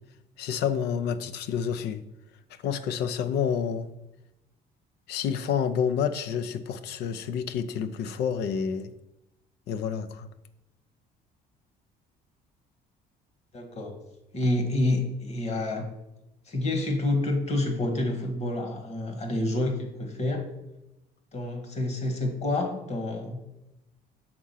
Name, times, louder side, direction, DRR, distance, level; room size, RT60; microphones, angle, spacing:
voice 1, 0.4-2.0 2.6-3.9 5.1-8.9 9.7-10.3, left 7 dB, 75° left, 12 dB, 0.5 m, -29 dB
voice 2, 13.5-14.0 14.3-15.9 16.5-20.4 21.3-23.4, left 2 dB, 40° left, 4 dB, 1.4 m, -28 dB
6.0 x 3.7 x 5.6 m, 0.91 s
cardioid pair, 110°, 17 cm